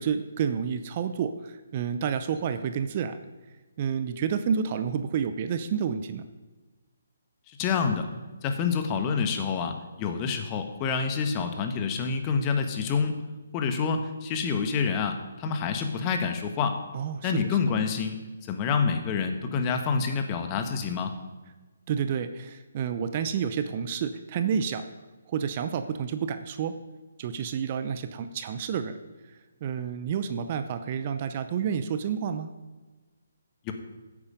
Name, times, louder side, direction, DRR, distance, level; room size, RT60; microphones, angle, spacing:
voice 1, 0.0-3.2 3.8-6.3 16.9-17.3 21.9-24.9 25.3-26.7 27.2-28.9 29.6-32.5, right 7 dB, 35° right, 10 dB, 0.7 m, -29 dB
voice 2, 7.5-8.1 8.4-13.1 13.5-16.8 17.2-21.1 33.6-33.7, left 5 dB, 25° left, 6 dB, 1.4 m, -27 dB
15.5 x 8.6 x 5.1 m, 1.2 s
figure-of-eight pair, 140°, 0 cm